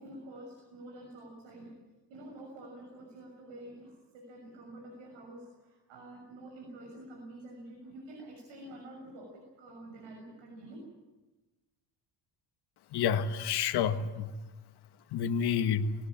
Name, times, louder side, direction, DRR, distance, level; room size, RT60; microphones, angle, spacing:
voice 1, 0.0-1.8 2.1-10.9, right 1 dB, 90° right, 1 dB, 6.9 m, -48 dB
voice 2, 12.9-14.3 15.1-15.8, left 8 dB, 55° left, 8 dB, 1.6 m, -29 dB
22.0 x 18.0 x 8.8 m, 1.1 s
cardioid pair, 140°, 46 cm